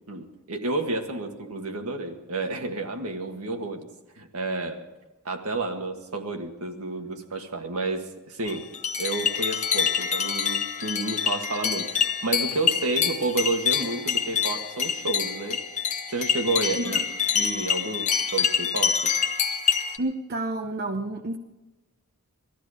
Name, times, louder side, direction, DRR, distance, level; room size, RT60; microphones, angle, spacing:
voice 1, 0.1-3.9 4.2-4.8 5.3-8.7 9.0-15.6 16.1-17.0 17.3-19.1, right 2 dB, 80° right, 4 dB, 1.8 m, -30 dB
sound 1, 8.5-20.0, left 7 dB, 35° left, 1.0 m, -26 dB
voice 2, 20.0-21.4, right 2 dB, 45° right, 5 dB, 0.8 m, -30 dB
19.0 x 13.5 x 5.0 m, 1.1 s
head